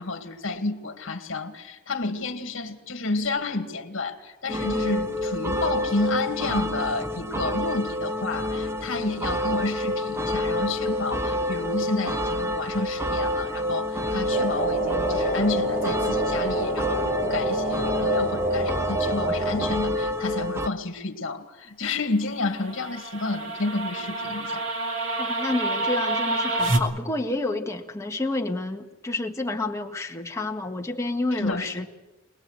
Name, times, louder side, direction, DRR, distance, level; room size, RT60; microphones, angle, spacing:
voice 1, 0.0-24.6 31.4-31.9, left 3 dB, 65° left, 2.2 m, -30 dB
sound 1, 4.5-20.7, left 1 dB, 10° right, 0.8 m, -28 dB
sound 2, 14.3-19.7, right 2 dB, 45° right, 6.6 m, -28 dB
sound 3, 22.4-26.8, right 2 dB, 70° right, 2.7 m, -28 dB
voice 2, 25.2-31.9, left 2 dB, 15° left, 1.6 m, -29 dB
24.5 x 20.5 x 8.0 m
head